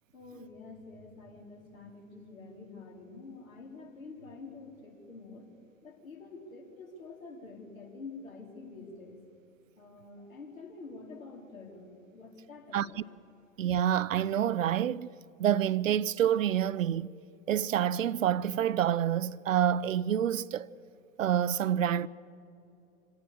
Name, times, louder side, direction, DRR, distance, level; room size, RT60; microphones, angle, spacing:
voice 1, 0.1-5.5 5.8-9.2 9.8-13.0, left 3 dB, 70° left, 4.2 m, -47 dB
voice 2, 13.6-15.1 15.4-17.1 17.5-20.7 21.2-22.1, right 10 dB, 65° right, 0.6 m, -27 dB
26.5 x 17.0 x 6.9 m
figure-of-eight pair, 100°, 43 cm